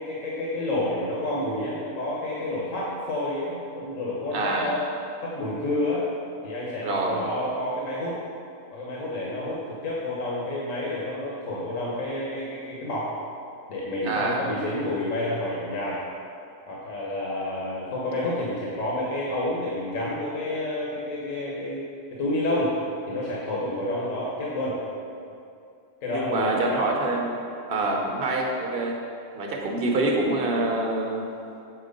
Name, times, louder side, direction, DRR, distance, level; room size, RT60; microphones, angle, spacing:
voice 1, 0.0-4.8 5.2-6.1 6.4-8.2 8.7-13.1 13.7-16.0 16.7-21.9 22.2-22.7 23.1-24.8 26.0-26.8 27.8-28.0, left 1 dB, 80° left, -5 dB, 1.4 m, -29 dB
voice 2, 4.3-4.7 6.8-7.2 14.0-14.4 26.1-27.4 27.7-29.0 29.3-31.3, right 2 dB, 50° right, 0 dB, 1.1 m, -26 dB
7.3 x 4.4 x 5.2 m, 2.6 s
omnidirectional pair, 1.3 m